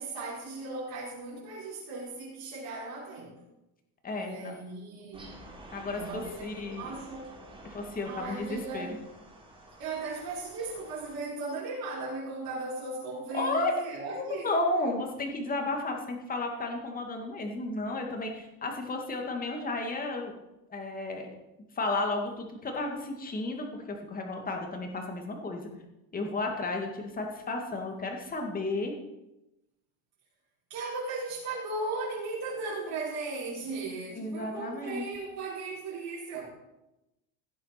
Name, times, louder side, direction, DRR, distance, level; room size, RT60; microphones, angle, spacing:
voice 1, 0.0-3.3 4.1-5.3 5.9-7.4 8.0-8.9 9.8-14.5 30.7-36.5, right 3 dB, 50° right, -7 dB, 5.1 m, -37 dB
voice 2, 4.0-4.5 5.7-6.9 7.7-8.9 13.3-13.7 14.1-20.3 20.7-21.3 21.8-25.7 26.1-28.9 34.2-35.1, left 2 dB, 20° left, 2 dB, 2.3 m, -33 dB
sound 1, 5.1-11.2, right 1 dB, 10° right, 3.3 m, -50 dB
17.0 x 7.6 x 6.0 m, 0.94 s
cardioid pair, 150°, 44 cm